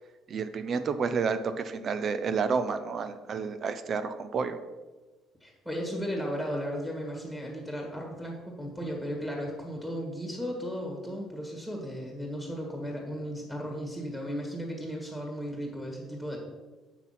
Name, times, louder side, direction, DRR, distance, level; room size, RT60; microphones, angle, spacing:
voice 1, 0.3-4.6, right 5 dB, 40° right, 10 dB, 0.5 m, -30 dB
voice 2, 5.4-16.4, equal, 5° right, 0 dB, 1.7 m, -35 dB
7.4 x 6.0 x 5.8 m, 1.2 s
cardioid pair, 145°, 0 cm